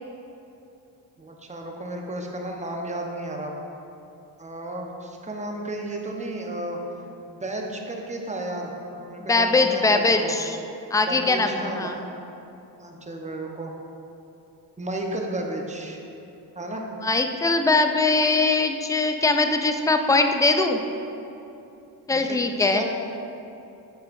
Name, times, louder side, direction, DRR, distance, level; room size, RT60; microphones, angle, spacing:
voice 1, 1.2-3.5 4.4-6.8 7.3-10.3 11.1-12.1 12.8-13.7 14.8-16.0 16.5-16.8 22.1-22.4 22.7-22.8, right 1 dB, 15° right, 1 dB, 1.0 m, -33 dB
voice 2, 9.3-10.6 10.9-12.0 17.0-20.8 22.1-22.8, left 3 dB, 10° left, 6 dB, 0.4 m, -21 dB
7.4 x 7.2 x 2.6 m, 2.8 s
supercardioid pair, 70°, 46 cm